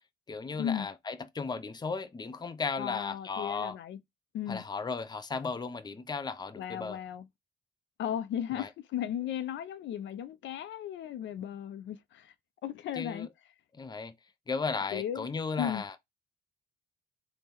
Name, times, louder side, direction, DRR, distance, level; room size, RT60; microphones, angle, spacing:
voice 1, 0.3-3.8 4.5-7.0 8.6-8.7 13.0-13.3 13.7-14.1 14.5-15.9, left 4 dB, 20° left, 0.6 m, -35 dB
voice 2, 2.8-4.0 4.3-4.6 6.6-7.3 8.0-12.3 12.6-13.3 14.9-15.3 15.6-15.8, left 10 dB, 70° left, 0.4 m, -35 dB
3.5 x 2.1 x 4.3 m
cardioid pair, 90°, 20 cm